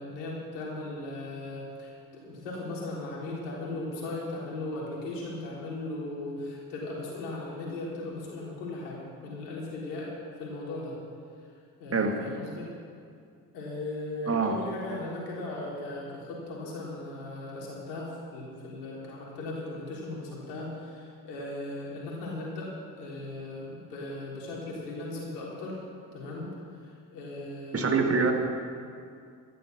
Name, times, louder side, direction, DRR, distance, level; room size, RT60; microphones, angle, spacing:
voice 1, 0.0-11.0 11.8-12.7 13.5-25.8 26.1-26.5 26.8-28.3, left 2 dB, 70° left, -4 dB, 3.9 m, -37 dB
voice 2, 27.7-28.3, right 4 dB, 30° right, 4 dB, 2.0 m, -24 dB
13.0 x 12.0 x 6.5 m, 2.3 s
figure-of-eight pair, 45°, 49 cm